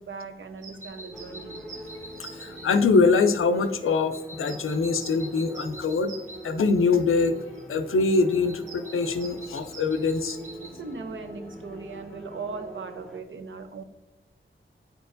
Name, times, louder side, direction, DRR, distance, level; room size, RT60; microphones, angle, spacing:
voice 1, 0.0-1.7 10.6-13.8, right 4 dB, 65° right, 7 dB, 0.7 m, -39 dB
sound 1, 0.6-12.0, right 2 dB, 40° right, 1.7 m, -47 dB
sound 2, 1.1-13.2, equal, ahead, 0.7 m, -44 dB
voice 2, 2.2-6.1 6.4-10.4, left 4 dB, 80° left, 9 dB, 0.5 m, -23 dB
9.2 x 4.5 x 2.6 m, 1.0 s
wide cardioid pair, 80°, 21 cm